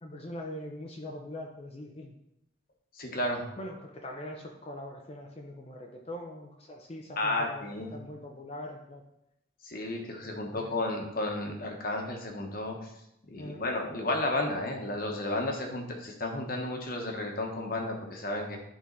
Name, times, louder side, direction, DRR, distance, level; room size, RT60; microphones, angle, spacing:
voice 1, 0.0-2.1 3.6-9.0 10.1-10.8 13.4-13.6, left 1 dB, 30° left, 1 dB, 0.6 m, -42 dB
voice 2, 2.9-3.4 7.2-7.9 9.6-12.9 13.3-18.6, left 1 dB, 45° left, 2 dB, 1.2 m, -32 dB
11.0 x 3.8 x 4.0 m, 0.83 s
head